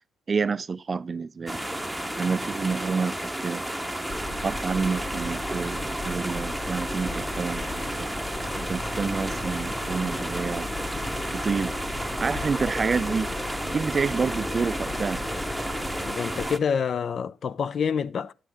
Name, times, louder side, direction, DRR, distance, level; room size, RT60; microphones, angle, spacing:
voice 1, 0.3-1.6 2.2-3.2 3.4-3.6 4.4-8.2 8.6-10.7 11.3-11.7 12.2-13.3 13.7-15.2, right 5 dB, 35° right, 0.4 m, -28 dB
sound 1, 1.5-16.6, right 1 dB, ahead, 0.8 m, -32 dB
sound 2, 4.1-16.1, left 2 dB, 20° left, 1.3 m, -36 dB
voice 2, 16.1-18.3, left 7 dB, 55° left, 0.5 m, -27 dB
10.0 x 7.9 x 3.5 m
cardioid pair, 90°, 0 cm